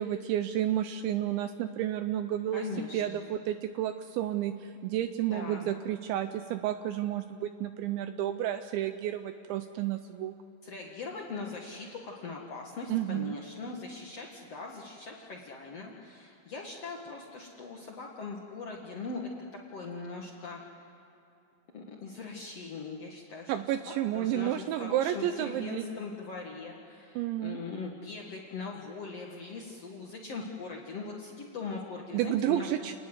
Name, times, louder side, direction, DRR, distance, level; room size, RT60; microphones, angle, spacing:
voice 1, 0.0-2.7 2.9-10.3 12.9-13.3 23.5-25.8 27.2-27.6 32.1-33.0, right 12 dB, 85° right, 10 dB, 2.6 m, -31 dB
voice 2, 2.5-3.2 5.3-5.7 10.6-19.2 19.7-20.6 21.7-23.5 23.8-32.7, left 4 dB, 80° left, -1 dB, 1.4 m, -40 dB
29.0 x 20.0 x 8.0 m, 2.8 s
omnidirectional pair, 6.0 m